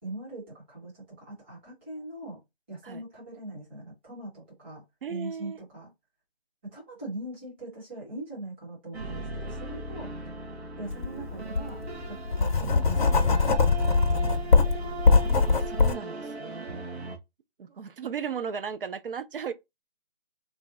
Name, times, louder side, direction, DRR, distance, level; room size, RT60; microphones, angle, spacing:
voice 1, 0.0-2.4 2.7-5.9 6.7-10.4 10.8-14.7, right 2 dB, 10° right, 0.8 m, -42 dB
voice 2, 5.0-5.6 15.4-16.7 17.6-19.5, right 7 dB, 60° right, 0.6 m, -36 dB
sound 1, 8.9-17.2, right 3 dB, 90° right, 1.1 m, -38 dB
Writing, 10.9-11.1 11.5-16.0, left 4 dB, 50° left, 0.5 m, -22 dB
3.1 x 2.5 x 3.7 m
hypercardioid pair, 165°, 31 cm